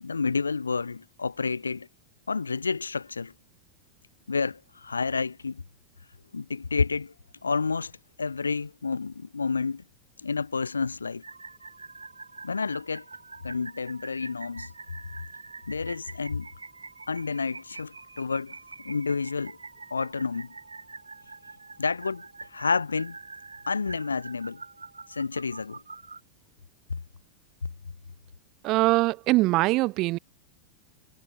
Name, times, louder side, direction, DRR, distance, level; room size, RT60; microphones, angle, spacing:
voice 1, 0.0-1.9 2.3-3.3 4.3-5.6 6.3-7.1 7.4-7.9 8.2-9.8 10.2-11.2 12.4-13.0 13.4-14.7 15.7-16.5 17.1-18.5 18.8-19.6 19.9-20.5 21.8-22.2 22.5-23.2 23.7-24.6 25.1-25.8, left 4 dB, 75° left, 1.3 m, -29 dB
sound 1, 11.2-26.2, right 4 dB, 80° right, 1.8 m, -45 dB
voice 2, 28.6-30.2, right 20 dB, 40° right, 1.2 m, -22 dB
figure-of-eight pair, 90°, 0 cm